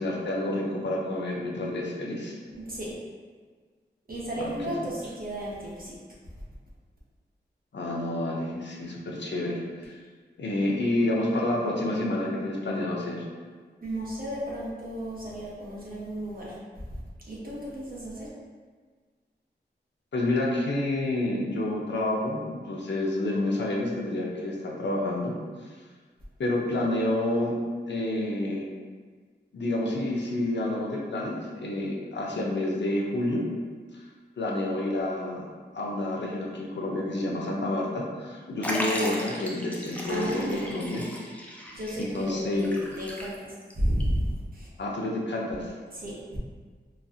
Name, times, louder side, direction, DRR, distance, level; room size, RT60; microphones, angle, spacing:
voice 1, 0.0-2.4 4.4-4.5 7.7-10.0 10.4-13.3 20.1-25.4 25.6-25.7 26.4-27.5 27.9-28.6 29.5-33.4 33.9-34.0 34.4-35.5 35.7-41.1 42.0-42.7 44.8-45.7, left 1 dB, 75° left, -2 dB, 0.6 m, -29 dB
voice 2, 2.5-2.9 4.1-5.9 13.8-16.9 17.3-18.3 40.1-41.0 41.7-43.4 43.8-44.7 45.9-46.4, equal, 50° right, -6 dB, 1.0 m, -33 dB
Liquid, 38.6-43.7 44.0-44.1 45.0-45.1, equal, 10° left, 0.5 m, -36 dB
4.0 x 2.3 x 2.7 m, 1.5 s
wide cardioid pair, 80°, 19 cm